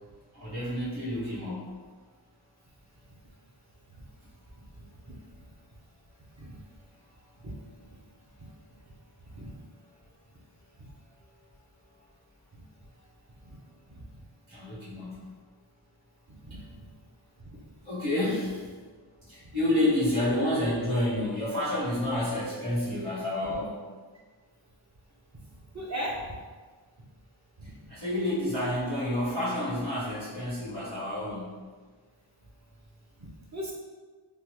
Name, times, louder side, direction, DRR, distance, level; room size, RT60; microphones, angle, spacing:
voice 1, 0.3-1.7 4.8-4.9 14.5-15.2 17.8-18.6 19.3-23.7 27.9-31.5, left 1 dB, 75° right, -11 dB, 1.4 m, -29 dB
voice 2, 4.7-5.1 6.4-6.6 7.4-7.5 7.9-8.0 8.4-8.5 9.3-9.5 10.8-10.9 12.5-12.6 13.4-13.6 13.9-14.0 16.4-16.6 17.5-17.6 23.4-23.5 25.7-26.4 27.6-27.7 33.2-33.7, equal, 35° right, -4 dB, 0.7 m, -38 dB
3.4 x 2.1 x 3.0 m, 1.4 s
wide cardioid pair, 45°, 48 cm